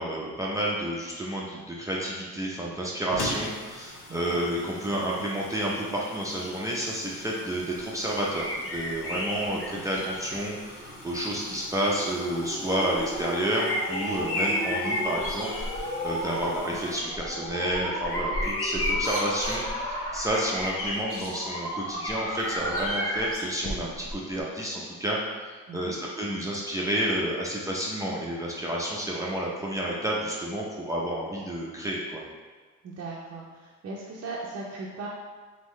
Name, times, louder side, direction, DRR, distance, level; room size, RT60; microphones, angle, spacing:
voice 1, 0.0-32.2, right 1 dB, 10° right, -5 dB, 0.7 m, -30 dB
sound 1, 3.1-17.0, left 1 dB, 90° left, 1.0 m, -44 dB
voice 2, 4.1-4.4 9.7-10.0 16.3-16.8 25.7-26.0 32.8-35.1, right 3 dB, 55° right, -5 dB, 0.7 m, -39 dB
sound 2, 8.3-10.4 11.2-11.3 12.9-15.8 16.2-16.6 17.0-21.4 22.0-24.1 24.4-24.5, left 1 dB, 45° left, 1.1 m, -32 dB
sound 3, 10.8-23.5, equal, 15° left, 1.1 m, -35 dB
3.7 x 3.6 x 3.1 m, 1.4 s
cardioid pair, 90°, 30 cm